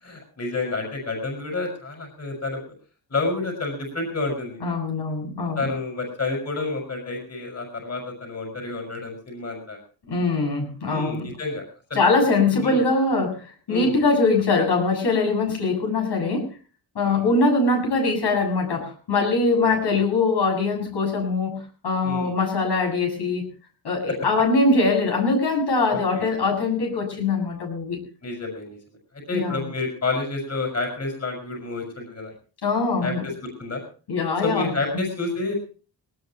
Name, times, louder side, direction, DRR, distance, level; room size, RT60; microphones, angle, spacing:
voice 1, 0.0-2.6 3.1-4.6 5.6-9.8 10.8-12.0 12.5-12.8 13.7-14.0 17.0-17.3 19.6-20.1 22.0-22.3 25.9-26.2 28.2-28.8 29.3-32.3 33.0-33.8 34.4-35.5, left 3 dB, 40° left, 2 dB, 5.9 m, -29 dB
voice 2, 4.6-5.6 10.1-11.3 11.9-16.5 17.0-23.5 23.8-28.0 29.3-29.7 32.6-33.2 34.1-34.7, left 3 dB, 75° left, 2 dB, 7.2 m, -22 dB
20.5 x 18.5 x 3.0 m, 0.37 s
wide cardioid pair, 145°, 41 cm